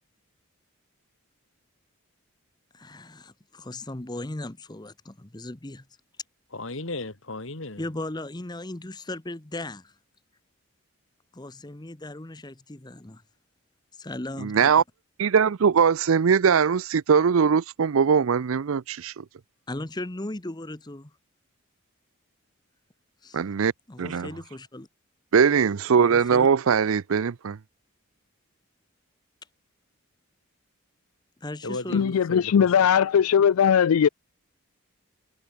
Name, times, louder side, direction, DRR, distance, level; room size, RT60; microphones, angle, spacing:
voice 1, 2.8-5.8 7.8-9.9 11.3-13.2 13.9-14.8 19.7-21.1 23.2-23.4 23.9-24.9 26.0-26.5 31.4-32.0, left 1 dB, 20° left, 0.9 m, -37 dB
voice 2, 6.5-7.8 31.6-32.8, left 2 dB, 65° left, 2.5 m, -34 dB
voice 3, 14.4-14.8 15.2-19.2 23.3-23.7 24.0-24.3 25.3-27.6, right 6 dB, 70° right, 0.5 m, -21 dB
voice 4, 31.9-34.1, left 7 dB, 85° left, 0.4 m, -19 dB
head